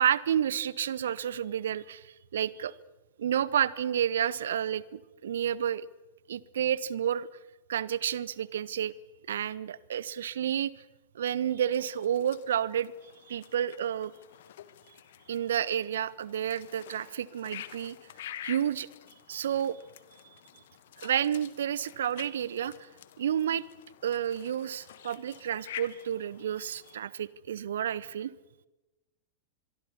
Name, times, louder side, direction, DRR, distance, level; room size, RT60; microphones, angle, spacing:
voice 1, 0.0-2.7 3.2-5.9 6.3-7.3 7.7-8.9 9.3-10.7 11.1-12.9 13.3-14.1 15.3-18.0 18.4-18.9 19.3-19.8 21.0-22.9 23.2-23.6 24.0-28.3, right 9 dB, 65° right, 21 dB, 0.9 m, -30 dB
sound 1, 11.7-27.0, left 12 dB, 60° left, 1.5 m, -48 dB
24.5 x 23.0 x 7.2 m, 1.1 s
figure-of-eight pair, 90°, 0 cm